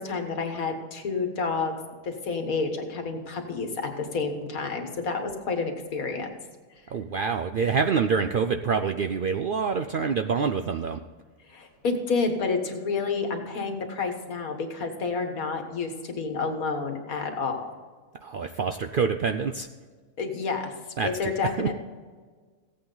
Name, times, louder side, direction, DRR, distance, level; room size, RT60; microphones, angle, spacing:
voice 1, 0.0-1.8 2.0-6.3 11.5-17.8 20.2-20.7 21.0-21.7, left 4 dB, 90° left, 5 dB, 1.8 m, -29 dB
voice 2, 6.9-11.0 18.2-19.7 21.0-21.7, right 5 dB, 65° right, 6 dB, 0.5 m, -26 dB
15.5 x 8.6 x 3.9 m, 1.5 s
omnidirectional pair, 1.4 m